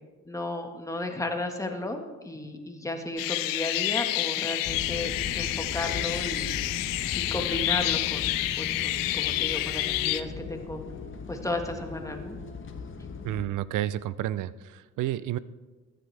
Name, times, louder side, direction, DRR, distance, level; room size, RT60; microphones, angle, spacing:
voice 1, 0.2-6.5 7.1-8.3 8.6-10.8 11.3-12.4, left 2 dB, 10° left, 4 dB, 1.5 m, -34 dB
sound 1, 3.2-10.2, left 16 dB, 85° left, 0.5 m, -29 dB
sound 2, 4.6-13.4, left 5 dB, 40° left, 1.2 m, -38 dB
voice 2, 13.2-15.4, right 13 dB, 65° right, 18 dB, 0.5 m, -30 dB
15.0 x 9.7 x 3.4 m, 1.3 s
supercardioid pair, 80°, 33 cm